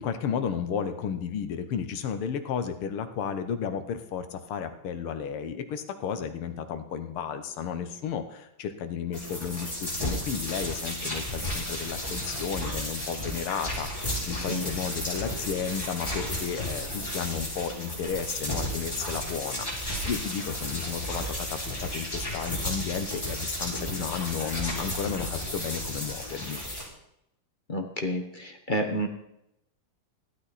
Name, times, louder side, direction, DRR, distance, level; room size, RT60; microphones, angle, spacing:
voice 1, 0.0-26.6, left 7 dB, 90° left, 8 dB, 1.9 m, -33 dB
Light Electricity crackling, 9.1-26.8, left 1 dB, 10° left, 4.4 m, -33 dB
voice 2, 14.3-14.6 27.7-29.1, equal, 30° left, 4 dB, 0.9 m, -30 dB
15.5 x 12.0 x 4.2 m, 0.81 s
omnidirectional pair, 2.3 m